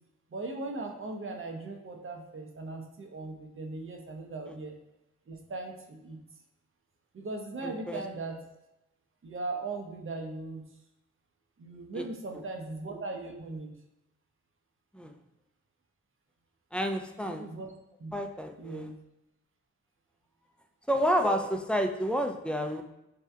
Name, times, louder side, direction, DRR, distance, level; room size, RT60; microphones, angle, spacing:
voice 1, 0.3-4.8 5.3-6.2 7.1-8.4 9.2-10.6 11.6-13.7 17.2-17.7 18.0-18.1 18.6-19.0, right 3 dB, 40° right, 2 dB, 0.7 m, -38 dB
voice 2, 7.6-8.0 11.9-12.0 14.9-15.2 16.7-17.4 18.1-18.9 20.9-22.8, equal, 5° left, 5 dB, 0.3 m, -30 dB
2.8 x 2.2 x 3.4 m, 0.91 s
supercardioid pair, 40°, 31 cm